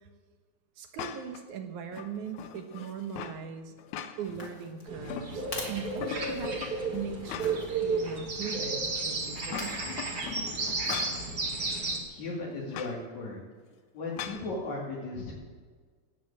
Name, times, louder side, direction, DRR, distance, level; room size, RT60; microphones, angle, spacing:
voice 1, 0.8-3.7 4.2-6.6 6.9-9.8, right 7 dB, 80° right, 6 dB, 2.7 m, -39 dB
sound 1, 1.0-1.4 1.9-3.4 3.8-4.5 4.9-5.6 6.0-7.8 8.2-8.3 9.3-11.3 12.7-13.0 14.2-14.5, left 8 dB, 80° left, 2.4 m, -40 dB
sound 2, 4.3-6.7 7.4-7.7 9.4-9.9 10.8-11.2 11.7-11.8, left 2 dB, 30° left, 2.5 m, -42 dB
sound 3, 4.9-12.0, right 3 dB, 35° right, 2.1 m, -33 dB
voice 2, 12.1-13.4 13.9-15.3, left 2 dB, 65° left, -6 dB, 3.8 m, -36 dB
15.0 x 9.2 x 8.7 m, 1.5 s
omnidirectional pair, 3.4 m